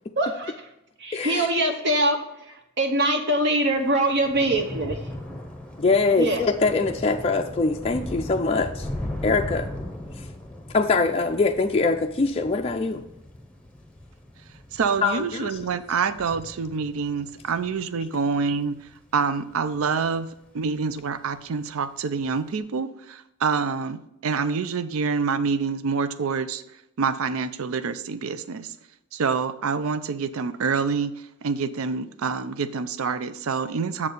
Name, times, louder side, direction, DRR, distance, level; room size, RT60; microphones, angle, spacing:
voice 1, 0.2-0.7 1.0-5.1 6.2-6.4, right 1 dB, 50° right, 3 dB, 0.8 m, -24 dB
voice 2, 1.1-1.5 5.8-8.9 9.2-9.7 10.2-10.3 10.7-13.0 15.0-15.6, left 3 dB, 25° left, 2 dB, 0.4 m, -23 dB
Thunder / Rain, 3.7-20.3 20.6-21.1 21.4-21.5, left 1 dB, 5° left, 0.8 m, -38 dB
voice 3, 14.7-28.8 29.1-34.1, right 5 dB, 65° right, 13 dB, 0.5 m, -27 dB
7.3 x 4.4 x 6.6 m, 0.85 s
head